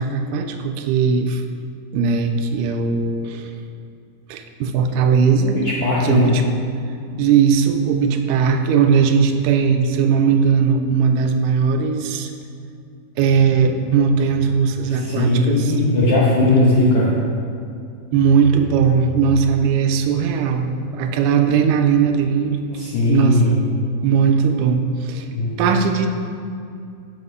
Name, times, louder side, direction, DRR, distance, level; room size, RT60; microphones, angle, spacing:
voice 1, 0.0-1.4 1.9-3.5 4.3-5.6 6.0-6.4 7.2-12.3 13.2-15.7 18.1-22.6 23.1-23.6 24.0-25.3 25.6-26.1, right 6 dB, 85° right, 6 dB, 2.1 m, -18 dB
voice 2, 5.6-6.3 14.9-17.1 22.7-23.5 25.3-25.5, left 2 dB, 70° left, -6 dB, 1.4 m, -18 dB
7.3 x 4.9 x 5.4 m, 2.5 s
omnidirectional pair, 3.7 m